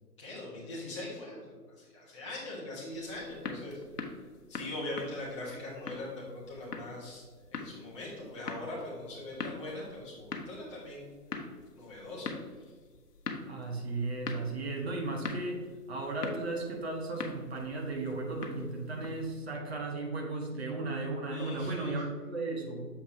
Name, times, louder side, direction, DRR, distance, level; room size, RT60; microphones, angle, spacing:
voice 1, 0.2-3.8 4.5-7.2 7.5-11.1 11.7-12.3 21.3-22.0, left 1 dB, 20° left, -6 dB, 1.3 m, -41 dB
sound 1, 2.9-19.4, left 4 dB, 75° left, 0.9 m, -44 dB
voice 2, 13.5-22.9, right 2 dB, 40° right, 1 dB, 1.1 m, -35 dB
7.0 x 5.3 x 2.7 m, 1.5 s
hypercardioid pair, 160°, 49 cm